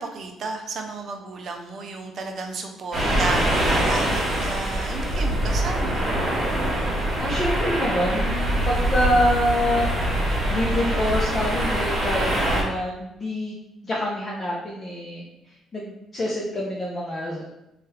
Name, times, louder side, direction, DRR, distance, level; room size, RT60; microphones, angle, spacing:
voice 1, 0.0-6.1, right 3 dB, 50° right, 4 dB, 0.5 m, -33 dB
sound 1, 2.9-12.6, right 1 dB, 35° right, 1.2 m, -24 dB
voice 2, 7.2-9.9 10.5-13.5 13.8-15.3 15.7-17.5, left 1 dB, 30° left, -6 dB, 0.6 m, -26 dB
3.0 x 2.3 x 3.2 m, 0.86 s
cardioid pair, 120°, 0 cm